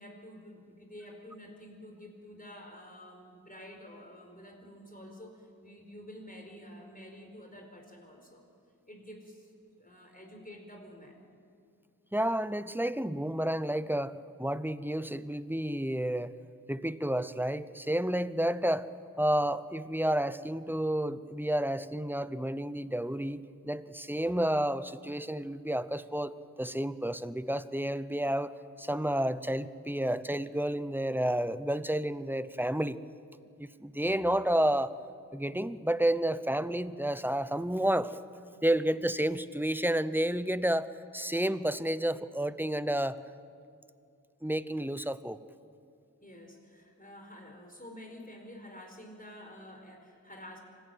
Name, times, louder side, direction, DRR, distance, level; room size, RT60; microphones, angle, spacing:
voice 1, 0.0-8.4 8.9-9.5 9.8-11.2 46.2-50.6, left 1 dB, 25° left, 2 dB, 4.6 m, -49 dB
voice 2, 12.1-16.4 16.7-18.9 19.2-33.0 33.6-34.9 35.3-38.2 38.6-40.9 41.1-43.2 44.4-45.4, right 1 dB, 5° right, 14 dB, 0.8 m, -30 dB
25.5 x 16.0 x 9.2 m, 2.4 s
wide cardioid pair, 45°, 36 cm